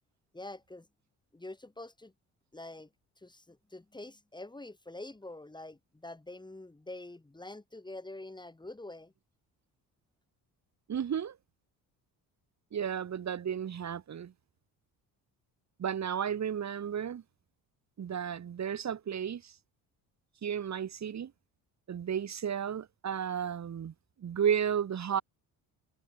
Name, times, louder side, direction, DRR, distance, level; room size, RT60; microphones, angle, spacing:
voice 1, 0.3-0.9 1.3-2.1 2.5-2.9 3.2-9.1, left 2 dB, 10° left, 3.2 m, -46 dB
voice 2, 10.9-11.4 12.7-14.3 15.8-17.2 18.0-19.5 20.4-21.3 21.9-23.9 24.2-25.2, right 8 dB, 45° right, 3.0 m, -33 dB
cardioid pair, 100°, 38 cm